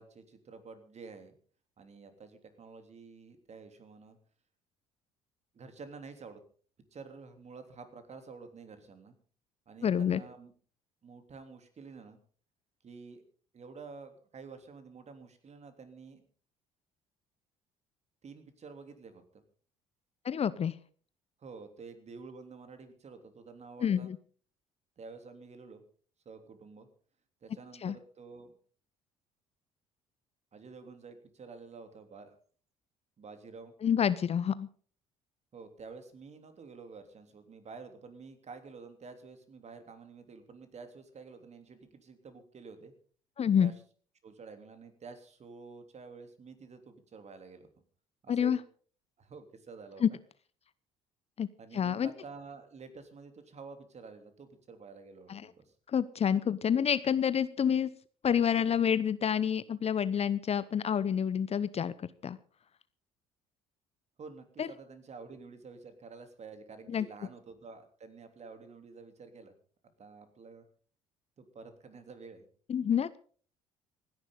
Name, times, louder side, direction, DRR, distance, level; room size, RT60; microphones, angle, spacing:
voice 1, 0.0-1.4 1.8-4.2 5.5-6.4 6.9-9.1 9.7-10.5 11.0-12.2 12.8-13.2 13.5-16.2 18.2-19.2 21.4-24.1 25.0-25.8 26.2-26.9 27.4-28.5 30.5-32.4 33.2-33.7 35.5-42.9 43.6-43.7 44.2-47.7 48.2-48.5 49.2-50.2 51.6-55.7 64.2-69.5 70.0-70.6 71.4-72.5, right 4 dB, 40° right, 8 dB, 3.2 m, -49 dB
voice 2, 9.8-10.2 20.2-20.7 23.8-24.2 27.8-27.9 33.8-34.7 43.4-43.7 48.3-48.6 50.0-50.1 51.4-51.5 51.7-52.1 55.3-55.4 55.9-57.9 58.2-62.4 64.6-64.7 66.9-67.1 72.7-73.2, left 8 dB, 35° left, 17 dB, 0.8 m, -28 dB
26.5 x 10.5 x 3.9 m, 0.44 s
figure-of-eight pair, 55°, 18 cm